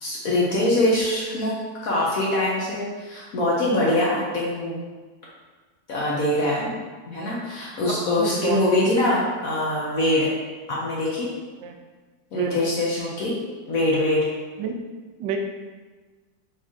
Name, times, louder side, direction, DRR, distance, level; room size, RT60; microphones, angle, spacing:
voice 1, 0.0-1.5 1.8-4.8 5.9-6.7 7.1-10.3 10.7-11.3 12.3-13.3 13.7-14.3, left 1 dB, 55° left, -5 dB, 1.2 m, -23 dB
voice 2, 7.9-9.0 11.6-11.7 12.3-12.6 14.6-14.8 15.2-15.4, right 6 dB, 80° right, 3 dB, 1.2 m, -29 dB
4.4 x 3.3 x 3.6 m, 1.3 s
omnidirectional pair, 2.0 m